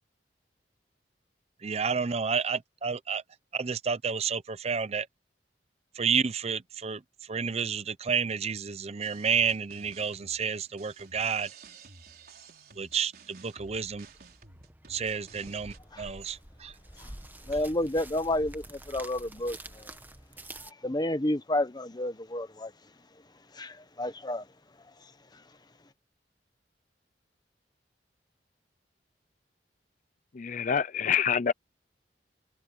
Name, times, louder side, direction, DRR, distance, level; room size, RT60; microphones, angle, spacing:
voice 1, 1.6-3.2 3.5-5.1 6.0-7.0 7.3-11.5 12.8-14.1 14.9-16.7, right 6 dB, 35° right, 0.6 m, -30 dB
sound 1, 9.0-15.8, right 4 dB, 60° right, 4.4 m, -53 dB
sound 2, 13.7-20.7, right 1 dB, 10° right, 1.3 m, -48 dB
voice 2, 17.5-19.9 20.8-22.7 23.5-24.5 25.3-25.4, left 1 dB, 25° left, 1.2 m, -31 dB
voice 3, 30.3-31.5, left 7 dB, 45° left, 0.5 m, -26 dB
head